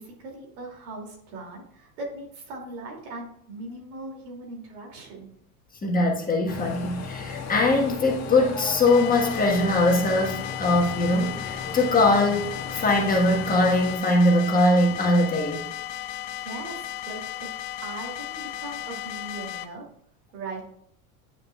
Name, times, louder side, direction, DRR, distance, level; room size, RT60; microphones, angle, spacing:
voice 1, 0.0-5.3 16.3-19.9 20.3-20.6, right 2 dB, 75° right, -1 dB, 2.7 m, -39 dB
voice 2, 5.8-15.7, left 2 dB, 20° left, 0 dB, 1.4 m, -22 dB
sound 1, 6.5-14.0, left 5 dB, 35° left, 1.8 m, -36 dB
sound 2, 8.9-19.7, left 12 dB, 50° left, 0.7 m, -35 dB
9.5 x 5.6 x 2.3 m, 0.67 s
supercardioid pair, 115°, 45 cm